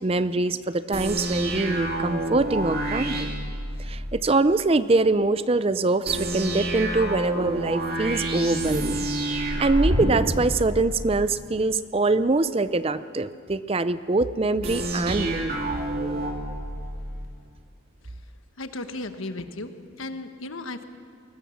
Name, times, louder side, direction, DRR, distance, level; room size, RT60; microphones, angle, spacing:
voice 1, 0.0-3.3 3.8-15.5, right 3 dB, 30° right, 14 dB, 0.5 m, -24 dB
sound 1, 0.9-4.2 6.1-11.3 14.6-17.3, right 1 dB, 45° right, 2.7 m, -28 dB
voice 2, 18.6-20.8, left 2 dB, 80° left, 8 dB, 1.3 m, -35 dB
22.0 x 19.5 x 7.1 m, 2.2 s
head